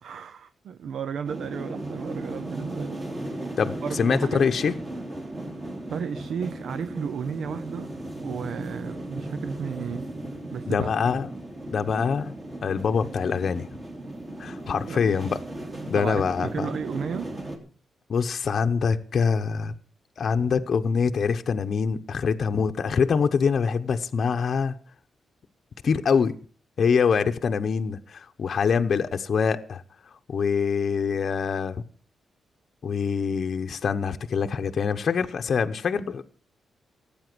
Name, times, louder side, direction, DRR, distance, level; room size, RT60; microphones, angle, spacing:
voice 1, 0.0-3.0 3.8-4.5 5.9-8.0 8.2-10.1 10.5-10.9 14.9-15.0 15.9-17.4, right 7 dB, 70° right, 0.6 m, -33 dB
sound 1, 1.2-17.6, right 1 dB, 25° right, 3.0 m, -36 dB
voice 2, 3.6-4.7 10.7-11.3 11.7-12.4 12.6-13.7 14.4-15.4 15.9-16.7 18.1-19.7 20.2-24.7 25.8-26.4 26.8-29.8 30.3-31.8 32.8-36.2, left 6 dB, 45° left, 0.8 m, -24 dB
17.5 x 8.8 x 6.1 m
wide cardioid pair, 155°, 0 cm